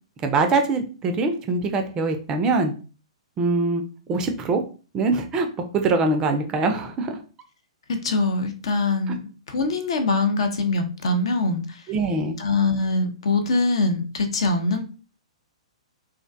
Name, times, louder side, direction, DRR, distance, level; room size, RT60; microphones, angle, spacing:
voice 1, 0.2-2.7 3.4-3.8 4.1-4.6 4.9-5.5 5.7-7.2 11.9-12.4, right 3 dB, 20° right, 6 dB, 0.4 m, -23 dB
voice 2, 7.9-11.8 12.4-14.8, left 3 dB, 60° left, 8 dB, 0.5 m, -23 dB
2.4 x 2.1 x 2.5 m, 0.36 s
figure-of-eight pair, 115°, 3 cm